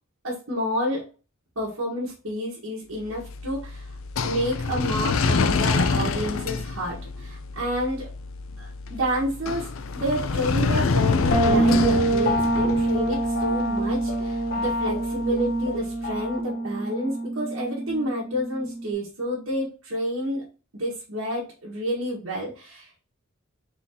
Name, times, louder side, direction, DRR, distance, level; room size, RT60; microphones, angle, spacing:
voice 1, 0.2-1.0 1.5-3.9 4.2-8.1 8.6-20.4 20.7-23.0, equal, 75° right, -6 dB, 1.6 m, -29 dB
sound 1, 3.0-16.1, left 4 dB, 70° left, 0.5 m, -28 dB
sound 2, 11.3-18.9, right 1 dB, 50° left, 1.1 m, -25 dB
4.1 x 3.9 x 2.8 m, 0.35 s
head